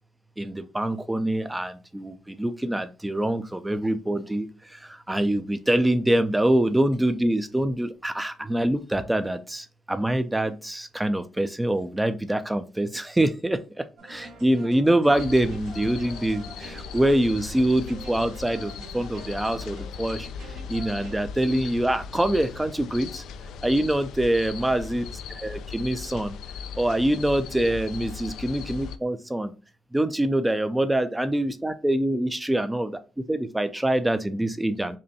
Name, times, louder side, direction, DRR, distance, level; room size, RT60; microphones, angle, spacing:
voice 1, 0.4-23.2 23.6-25.0 25.4-26.3 26.8-29.5 29.9-33.0 33.3-35.0, right 1 dB, 10° right, 10 dB, 0.4 m, -25 dB
sound 1, 14.0-21.2, right 2 dB, 85° right, 1.4 m, -45 dB
sound 2, 15.1-29.0, left 6 dB, 80° left, 0.3 m, -38 dB
5.3 x 2.1 x 2.7 m, 0.32 s
cardioid pair, 90°, 0 cm